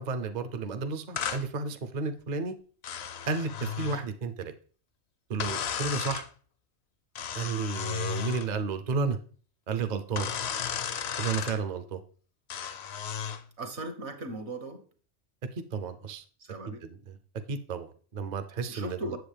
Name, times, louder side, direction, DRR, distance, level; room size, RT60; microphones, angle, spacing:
voice 1, 0.0-2.5 3.3-4.5 5.3-6.2 7.3-9.2 9.7-10.3 11.2-12.0 15.5-16.2 16.7-17.2 17.5-19.2, right 4 dB, 45° right, 9 dB, 0.6 m, -32 dB
sound 1, 1.2-1.4 2.8-4.0 5.4-6.3 7.1-8.5 10.2-11.6 12.5-13.4, left 8 dB, 65° left, 0.9 m, -34 dB
voice 2, 13.6-14.8 16.4-16.8 18.7-19.2, right 2 dB, 70° right, 7 dB, 1.5 m, -38 dB
7.8 x 7.2 x 3.3 m, 0.42 s
omnidirectional pair, 1.2 m